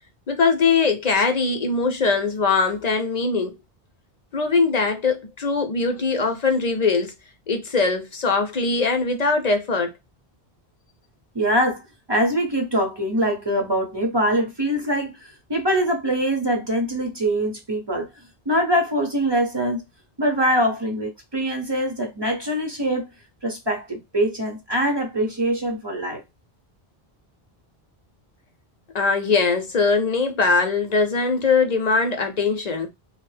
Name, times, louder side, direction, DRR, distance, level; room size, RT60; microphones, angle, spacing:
voice 1, 0.3-3.5 4.3-7.1 7.5-9.9 28.9-32.9, left 4 dB, 50° left, 0.6 m, -21 dB
voice 2, 11.3-18.1 18.5-19.8 20.2-23.1 23.4-26.2, equal, 30° right, 0.6 m, -23 dB
2.7 x 2.0 x 3.1 m
omnidirectional pair, 1.0 m